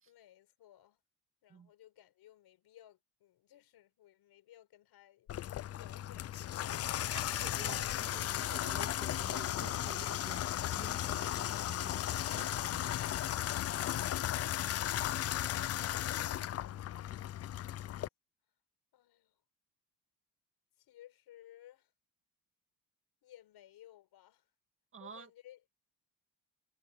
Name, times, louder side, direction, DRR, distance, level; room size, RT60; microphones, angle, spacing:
voice 1, 0.1-1.0 1.4-6.5 16.6-18.1 18.9-19.4 20.8-21.9 23.2-24.5 25.0-25.8, left 13 dB, 75° left, 4.8 m, -60 dB
Water tap faucet / Bathtub (filling or washing), 5.3-18.1, left 12 dB, 40° left, 0.4 m, -35 dB
voice 2, 7.1-13.1 24.9-25.3, right 6 dB, 30° right, 1.9 m, -51 dB
cardioid pair, 165°, 39 cm